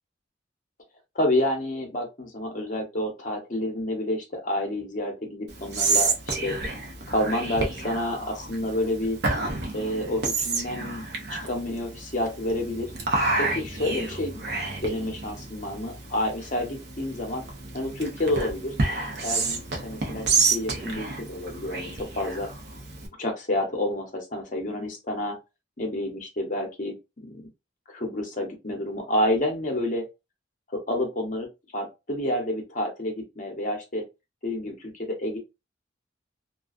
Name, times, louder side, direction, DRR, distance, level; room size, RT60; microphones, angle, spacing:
voice 1, 1.1-6.6 7.1-9.2 9.7-11.0 11.3-12.9 13.4-17.4 17.7-18.7 19.2-22.5 23.2-25.3 25.8-27.4 27.9-30.0 30.7-31.5 31.7-34.0 34.4-35.4, left 1 dB, 45° left, 0.8 m, -29 dB
Whispering, 5.5-23.1, right 3 dB, 60° right, 0.6 m, -30 dB
2.4 x 2.2 x 2.3 m
head